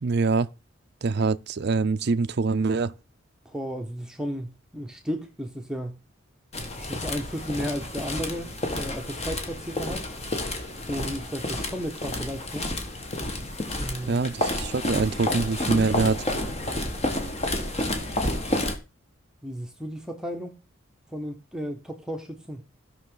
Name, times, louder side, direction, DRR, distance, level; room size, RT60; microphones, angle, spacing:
voice 1, 0.0-0.5 1.0-2.9 14.1-16.2, right 4 dB, 55° right, 0.5 m, -24 dB
voice 2, 3.4-6.0 6.7-10.1 10.9-12.7 13.8-14.2 19.4-20.6 21.1-22.6, equal, 5° right, 0.9 m, -34 dB
sound 1, 6.5-18.8, left 1 dB, 30° left, 1.5 m, -30 dB
16.5 x 6.0 x 3.9 m
head